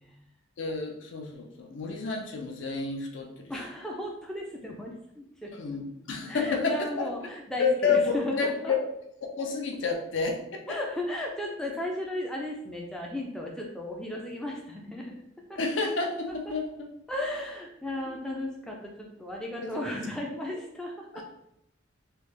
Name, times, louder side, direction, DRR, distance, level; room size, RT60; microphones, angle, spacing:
voice 1, 0.6-3.5 5.6-7.1 7.6-8.8 9.2-10.8 15.6-16.7 19.6-19.8 21.1-21.2, left 4 dB, 65° left, 2 dB, 0.5 m, -29 dB
voice 2, 3.5-5.5 6.3-8.7 10.7-15.1 15.5-15.6 16.5-16.6 17.1-21.2, left 1 dB, 5° left, -1 dB, 0.3 m, -35 dB
3.2 x 2.3 x 3.2 m, 0.77 s
head